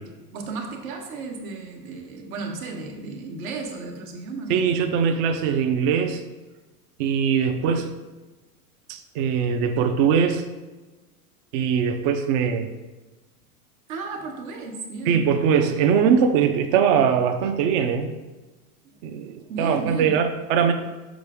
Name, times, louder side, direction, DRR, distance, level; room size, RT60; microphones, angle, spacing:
voice 1, 0.3-4.6 13.9-15.2 18.8-20.1, right 4 dB, 65° right, 2 dB, 1.5 m, -34 dB
voice 2, 4.5-6.2 7.0-7.9 8.9-10.4 11.5-12.7 15.1-18.1 19.0-20.7, right 7 dB, 45° right, 8 dB, 0.8 m, -21 dB
6.3 x 6.1 x 3.7 m, 1.2 s
hypercardioid pair, 125°, 45 cm